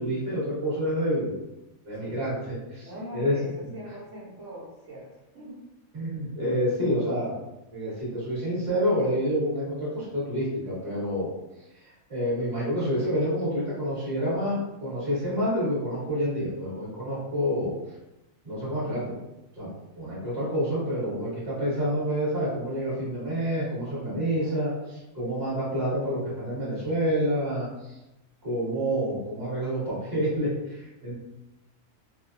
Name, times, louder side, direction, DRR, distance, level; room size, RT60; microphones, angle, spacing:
voice 1, 0.0-1.4 1.8-2.9 3.1-3.4 3.6-3.7 5.9-7.4 7.7-11.3 12.1-17.7 18.4-19.2 19.6-19.7 20.0-28.0 28.4-31.2, equal, 35° right, -9 dB, 1.3 m, -28 dB
voice 2, 2.8-5.6 24.3-24.7, equal, 65° right, -8 dB, 1.0 m, -42 dB
2.7 x 2.1 x 2.4 m, 0.95 s
omnidirectional pair, 1.5 m